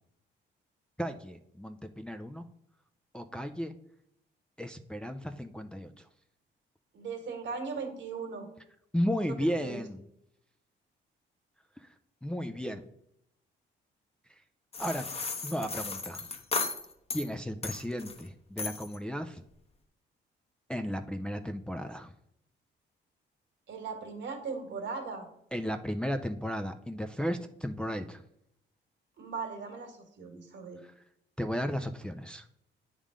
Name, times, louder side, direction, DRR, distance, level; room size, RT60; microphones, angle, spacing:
voice 1, 1.0-2.4 3.1-3.7 4.6-6.1 8.9-10.0 11.8-11.9 12.2-12.8 14.3-14.4 14.8-15.1 15.4-16.3 17.1-19.4 20.7-22.1 25.5-28.2 30.8-30.9 31.4-32.4, equal, 5° left, 5 dB, 0.4 m, -34 dB
voice 2, 6.9-8.5 9.2-9.8 23.7-25.3 29.2-30.8, right 5 dB, 65° right, 5 dB, 1.8 m, -38 dB
sound 1, 14.7-17.3 17.6-18.2 18.6-19.0, left 4 dB, 30° left, 0.9 m, -35 dB
8.7 x 3.7 x 4.9 m, 0.76 s
cardioid pair, 90°, 20 cm